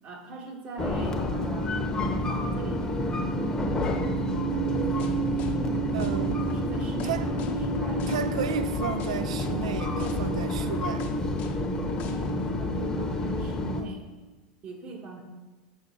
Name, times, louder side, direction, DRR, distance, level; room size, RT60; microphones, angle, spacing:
voice 1, 0.0-3.9 6.5-8.1 12.6-14.0 14.6-15.2, right 3 dB, 40° right, 1.1 m, -42 dB
sound 1, 0.8-13.8, equal, 20° left, 0.8 m, -28 dB
sound 2, 4.5-12.4, left 6 dB, 50° left, 0.7 m, -40 dB
voice 2, 5.9-6.5 7.0-7.3 8.1-11.1, right 8 dB, 80° right, 0.4 m, -33 dB
6.4 x 6.2 x 2.8 m
hypercardioid pair, 95°, 3 cm